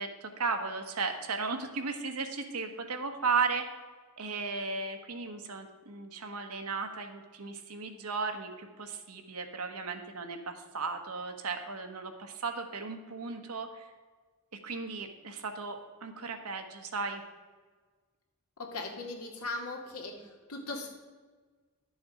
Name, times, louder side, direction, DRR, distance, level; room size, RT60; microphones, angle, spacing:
voice 1, 0.0-3.6 4.2-13.9 14.6-17.2, right 4 dB, 85° right, 5 dB, 1.3 m, -35 dB
voice 2, 18.6-20.1 20.5-20.9, left 2 dB, 90° left, 1 dB, 2.2 m, -38 dB
11.5 x 7.1 x 4.9 m, 1.4 s
head